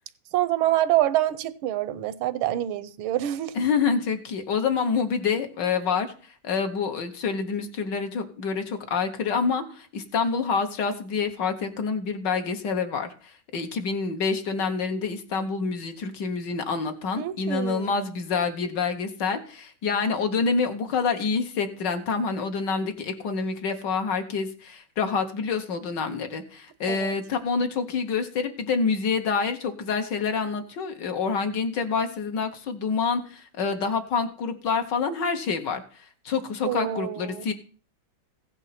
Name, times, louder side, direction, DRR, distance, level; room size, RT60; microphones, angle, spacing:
voice 1, 0.3-3.5 17.2-18.0 26.9-27.1 36.7-37.5, right 13 dB, 85° right, 1.5 m, -26 dB
voice 2, 3.5-37.5, left 5 dB, 65° left, 1.6 m, -27 dB
16.0 x 5.4 x 5.7 m
omnidirectional pair, 2.3 m